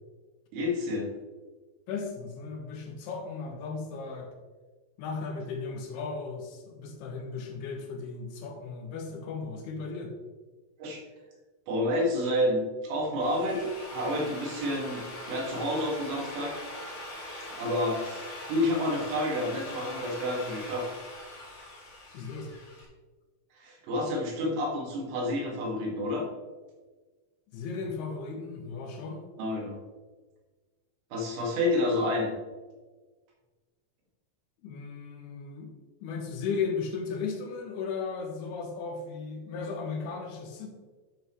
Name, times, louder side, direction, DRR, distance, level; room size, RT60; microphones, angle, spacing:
voice 1, 0.5-1.1 10.8-11.0 11.7-16.6 17.6-20.9 23.6-26.3 29.4-29.8 31.1-32.3, left 1 dB, 90° right, -1 dB, 4.1 m, -29 dB
voice 2, 1.9-4.3 5.0-10.1 22.1-22.5 27.5-29.3 34.6-35.7 36.0-40.7, left 5 dB, 75° left, 3 dB, 3.0 m, -36 dB
Drill, 13.0-22.8, left 1 dB, 40° left, 3.1 m, -42 dB
10.5 x 6.8 x 3.1 m, 1.3 s
omnidirectional pair, 4.7 m